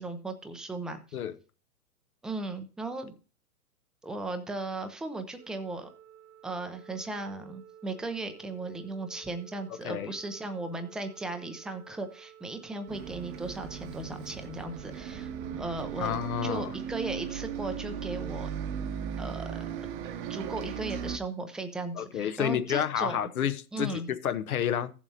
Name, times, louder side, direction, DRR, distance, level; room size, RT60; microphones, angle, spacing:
voice 1, 0.0-1.0 2.2-3.2 4.0-5.9 6.4-16.1 16.4-18.5 19.2-19.9 20.3-23.2 23.7-24.1, right 2 dB, ahead, 0.5 m, -37 dB
Organ, 5.4-16.5, right 10 dB, 75° right, 1.4 m, -53 dB
Bus, 12.9-21.2, right 8 dB, 35° right, 1.0 m, -37 dB
voice 2, 16.0-16.7 21.9-24.9, left 9 dB, 70° left, 1.0 m, -30 dB
16.0 x 7.2 x 2.8 m
hypercardioid pair, 120°, 45 cm